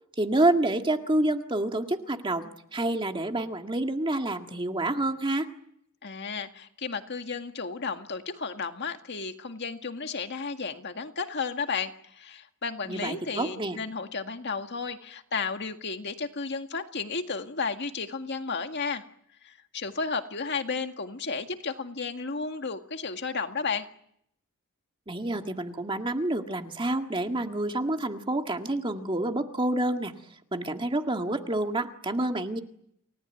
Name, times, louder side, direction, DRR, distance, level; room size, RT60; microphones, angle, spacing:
voice 1, 0.2-5.5 12.9-13.8 25.1-30.1 30.5-32.6, right 1 dB, 25° right, 5 dB, 1.9 m, -28 dB
voice 2, 6.0-19.0 19.4-23.9, left 4 dB, 55° left, 6 dB, 1.9 m, -33 dB
29.5 x 18.5 x 9.2 m, 0.71 s
head